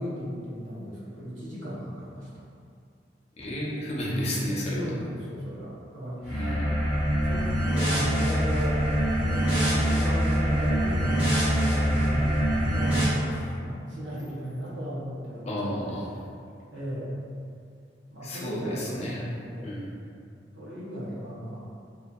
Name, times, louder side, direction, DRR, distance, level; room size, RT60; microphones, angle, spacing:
voice 1, 0.0-2.3 4.1-4.4 4.7-6.6 7.2-7.5 7.7-8.9 9.2-11.3 11.5-15.8 16.7-17.2 18.1-19.8 20.5-21.6, equal, 80° right, -7 dB, 0.8 m, -35 dB
voice 2, 3.4-4.9 6.3-6.7 15.4-16.1 18.2-19.3 19.6-19.9, equal, 35° left, -6 dB, 0.5 m, -32 dB
sound 1, 6.2-13.0, equal, 10° right, 0.9 m, -24 dB
2.7 x 2.6 x 2.2 m, 2.4 s
head